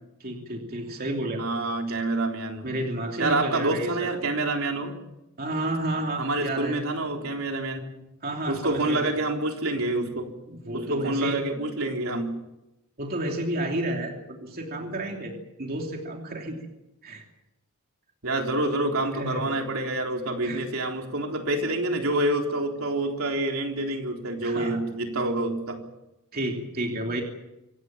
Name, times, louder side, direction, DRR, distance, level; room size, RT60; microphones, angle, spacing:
voice 1, 0.2-1.4 1.9-2.0 2.6-3.9 5.4-6.8 8.2-9.1 10.5-11.4 13.0-15.3 15.6-16.7 17.0-17.3 19.1-19.5 20.4-20.6 24.4-24.8 26.3-27.2, right 1 dB, 45° right, 1 dB, 2.9 m, -31 dB
voice 2, 1.4-2.7 3.2-4.9 6.2-7.9 8.5-10.3 10.7-12.3 18.2-25.8, right 2 dB, 75° right, 2 dB, 3.8 m, -27 dB
26.0 x 18.0 x 7.4 m, 0.93 s
head